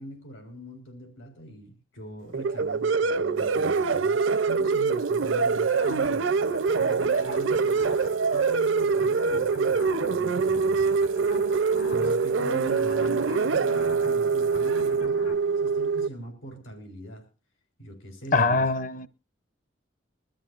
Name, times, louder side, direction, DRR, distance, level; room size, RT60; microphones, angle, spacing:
voice 1, 0.0-6.3 6.8-8.0 8.3-11.0 11.5-17.3 17.8-18.7, equal, 85° left, 3.9 m, -42 dB
sound 1, 2.3-16.1, right 5 dB, 70° right, 0.6 m, -24 dB
Water tap faucet / Bathtub (filling or washing), 3.4-15.0 15.9-16.0, right 5 dB, 90° right, 1.0 m, -41 dB
sound 2, 5.7-15.3, equal, 65° left, 2.9 m, -44 dB
voice 2, 18.3-19.1, left 3 dB, 40° left, 0.7 m, -23 dB
22.5 x 13.0 x 2.5 m
head